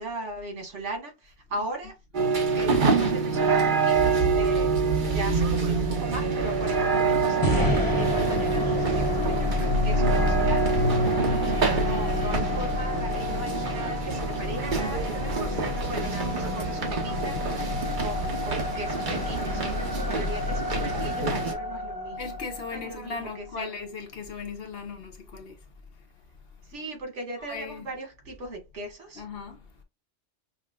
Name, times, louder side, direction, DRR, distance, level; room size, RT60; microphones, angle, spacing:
voice 1, 0.0-1.9 2.5-17.4 18.0-22.3 22.7-23.7 26.7-29.2, right 2 dB, 80° right, 1.9 m, -38 dB
sound 1, 2.1-21.5, right 4 dB, 45° right, 1.1 m, -27 dB
sound 2, 3.9-12.4, right 2 dB, 30° right, 1.6 m, -30 dB
sound 3, 7.4-23.6, left 1 dB, 20° left, 0.9 m, -30 dB
voice 2, 17.1-17.4 22.2-25.7 26.0-26.1 26.6-26.7 27.4-27.9 29.1-29.7, left 5 dB, 60° left, 1.0 m, -38 dB
5.7 x 2.1 x 2.3 m
omnidirectional pair, 1.2 m